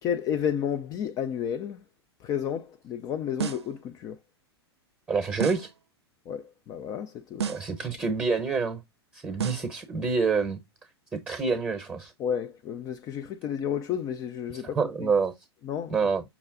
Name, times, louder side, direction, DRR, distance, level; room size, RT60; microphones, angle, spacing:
voice 1, 0.0-1.8 2.2-4.2 6.3-7.6 12.2-15.1 15.6-15.9, left 8 dB, 25° left, 0.4 m, -31 dB
sound 1, 3.4-3.8 5.4-5.8 7.4-7.8 9.4-9.8, right 7 dB, 80° right, 0.5 m, -32 dB
voice 2, 5.1-5.7 7.5-8.8 9.1-10.6 11.1-12.1 14.5-15.3 15.9-16.2, right 4 dB, 10° right, 0.9 m, -27 dB
5.8 x 2.3 x 3.6 m
figure-of-eight pair, 100°, 14 cm